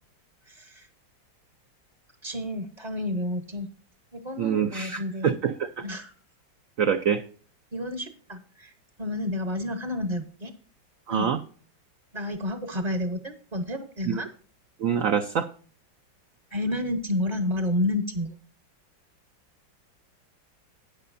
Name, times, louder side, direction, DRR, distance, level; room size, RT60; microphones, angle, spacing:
voice 1, 0.5-0.9 2.2-3.7 4.1-5.4 5.8-6.1 7.7-8.7 9.0-10.5 11.1-11.3 12.1-14.3 16.5-18.3, left 1 dB, 35° right, 7 dB, 0.6 m, -30 dB
voice 2, 4.4-5.8 6.8-7.2 11.1-11.4 14.1-14.2 14.8-15.5, right 8 dB, 80° right, 8 dB, 0.7 m, -25 dB
13.5 x 9.4 x 2.6 m, 0.43 s
omnidirectional pair, 2.1 m